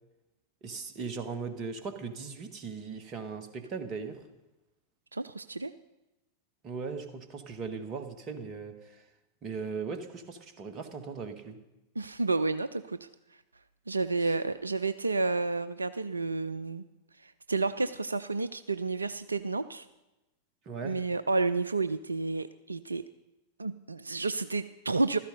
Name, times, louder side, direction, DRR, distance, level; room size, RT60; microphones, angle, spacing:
voice 1, 0.6-4.2 6.6-9.0 9.4-11.6 14.2-14.3 20.6-21.0, right 5 dB, 30° right, 8 dB, 1.7 m, -38 dB
voice 2, 5.1-5.7 12.0-13.1 13.9-16.8 17.2-19.9 20.8-23.1 23.6-25.2, right 3 dB, 80° right, 13 dB, 0.4 m, -30 dB
15.5 x 13.5 x 5.3 m, 0.99 s
figure-of-eight pair, 90°, 0 cm